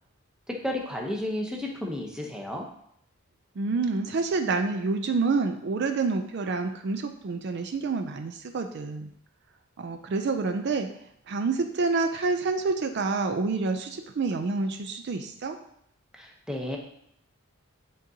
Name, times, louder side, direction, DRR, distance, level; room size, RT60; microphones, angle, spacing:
voice 1, 0.5-2.7 16.1-16.8, left 1 dB, 5° right, 0 dB, 0.7 m, -32 dB
voice 2, 3.6-9.1 9.8-10.9 11.3-15.6, right 4 dB, 50° right, 6 dB, 0.4 m, -28 dB
10.0 x 3.8 x 2.7 m, 0.73 s
head